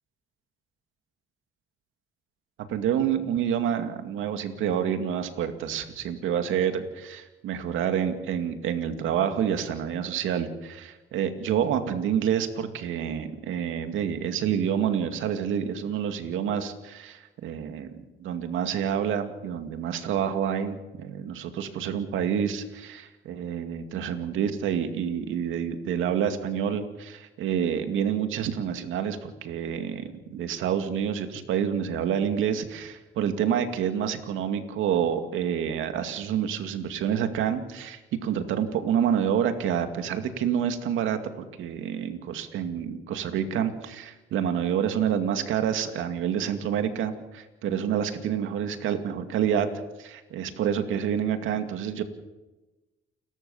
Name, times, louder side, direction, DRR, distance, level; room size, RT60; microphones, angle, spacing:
voice 1, 2.7-49.7 50.0-52.0, right 8 dB, 85° right, 7 dB, 2.3 m, -28 dB
30.0 x 13.5 x 7.2 m, 1.1 s
cardioid pair, 90°, 20 cm